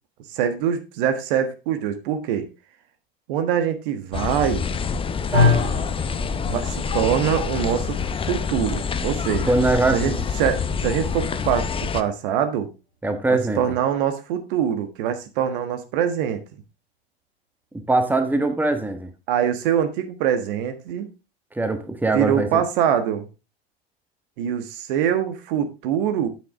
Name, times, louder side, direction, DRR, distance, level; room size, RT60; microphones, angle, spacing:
voice 1, 0.3-2.5 3.3-4.7 6.5-9.5 9.9-10.1 10.4-12.7 13.3-16.4 19.3-21.1 22.1-23.3 24.4-26.3, right 9 dB, 55° right, 1.5 m, -24 dB
sound 1, 4.1-12.0, left 6 dB, 15° left, 0.7 m, -26 dB
voice 2, 9.5-10.2 13.0-13.6 17.7-19.1 21.5-22.6, right 2 dB, 5° right, 1.3 m, -22 dB
sound 2, 12.9-13.6, left 3 dB, 90° right, 3.9 m, -28 dB
9.3 x 7.7 x 3.7 m
figure-of-eight pair, 75°, 31 cm